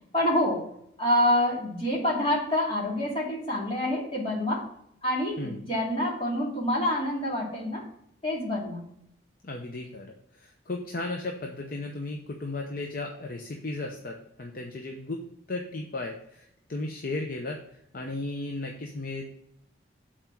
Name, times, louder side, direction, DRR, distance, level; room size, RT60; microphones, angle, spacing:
voice 1, 0.1-0.7 1.0-4.7 5.0-7.8 8.2-8.8, left 1 dB, 30° left, -4 dB, 2.3 m, -27 dB
voice 2, 9.4-17.6 17.9-19.4, left 2 dB, 45° left, 2 dB, 0.7 m, -35 dB
7.0 x 4.3 x 5.8 m, 0.74 s
head